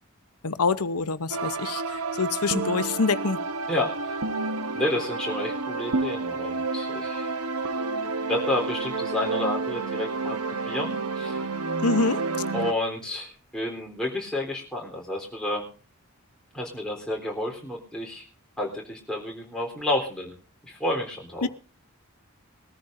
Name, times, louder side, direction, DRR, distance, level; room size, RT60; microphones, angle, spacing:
voice 1, 0.4-3.4 11.8-12.2 21.4-21.5, left 4 dB, 90° left, 0.9 m, -26 dB
sound 1, 1.3-12.7, right 3 dB, 90° right, 1.1 m, -30 dB
voice 2, 3.7-4.2 4.7-7.3 8.3-10.4 10.7-11.5 12.5-15.7 16.5-18.2 18.6-20.3 20.6-21.5, left 1 dB, 5° left, 3.8 m, -30 dB
22.0 x 14.0 x 2.7 m
head